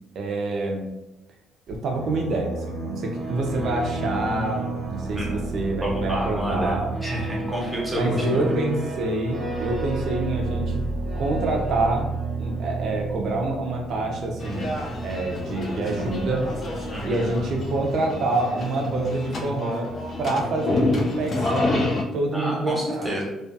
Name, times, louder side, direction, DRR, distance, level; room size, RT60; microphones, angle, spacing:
voice 1, 0.1-0.9 1.7-7.0 7.9-10.8 11.1-16.5 17.0-23.1, right 2 dB, 60° right, 1 dB, 0.5 m, -27 dB
sound 1, 1.7-18.3, right 3 dB, 25° right, 1.0 m, -31 dB
voice 2, 5.8-8.4 16.9-17.2 22.3-23.2, equal, 5° right, -3 dB, 0.8 m, -29 dB
sound 2, 14.4-22.0, left 2 dB, 45° left, 0.5 m, -28 dB
2.3 x 2.3 x 2.5 m, 0.93 s
cardioid pair, 110°, 0 cm